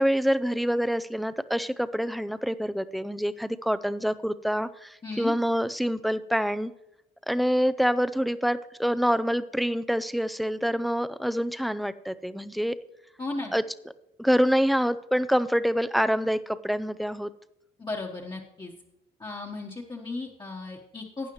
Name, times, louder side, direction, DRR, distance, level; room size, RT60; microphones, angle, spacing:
voice 1, 0.0-6.7 7.3-12.8 13.5-13.6 14.2-17.3, equal, ahead, 13 dB, 0.4 m, -26 dB
voice 2, 5.0-5.3 13.2-13.5 17.8-18.7 19.2-21.3, left 3 dB, 25° left, -3 dB, 1.2 m, -35 dB
12.0 x 9.3 x 3.1 m, 0.86 s
cardioid pair, 90°, 20 cm